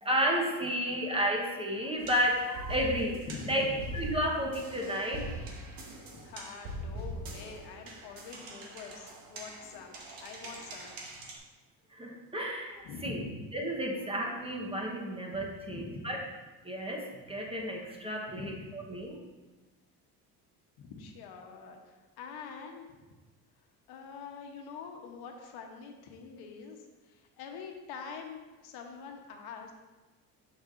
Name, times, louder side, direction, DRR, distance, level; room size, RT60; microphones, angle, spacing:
voice 1, 0.0-5.3 11.9-13.2 13.5-16.2 16.6-19.2, equal, 15° right, 0 dB, 1.1 m, -32 dB
sound 1, 2.0-11.4, equal, 60° right, 1.3 m, -42 dB
voice 2, 3.3-3.8 6.1-11.0 12.8-13.4 15.7-16.1 18.3-18.7 20.8-22.9 23.9-29.7, left 5 dB, 70° left, 3 dB, 1.0 m, -45 dB
6.6 x 6.1 x 2.6 m, 1.2 s
cardioid pair, 105°, 39 cm